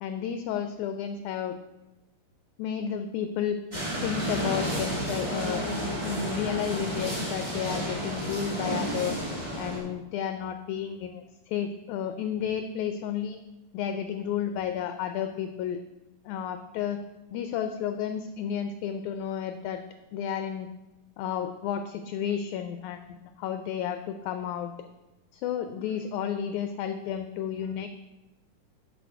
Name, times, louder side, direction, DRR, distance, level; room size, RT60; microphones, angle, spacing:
voice 1, 0.0-1.6 2.6-3.6 4.0-5.7 6.0-9.2 9.6-13.4 13.7-15.8 16.3-17.0 17.3-19.8 20.1-20.7 21.2-24.7 25.3-27.9, left 9 dB, 80° left, 8 dB, 1.8 m, -32 dB
sound 1, 3.7-9.8, equal, 10° right, 2.7 m, -31 dB
10.0 x 6.3 x 4.6 m, 1.0 s
omnidirectional pair, 3.8 m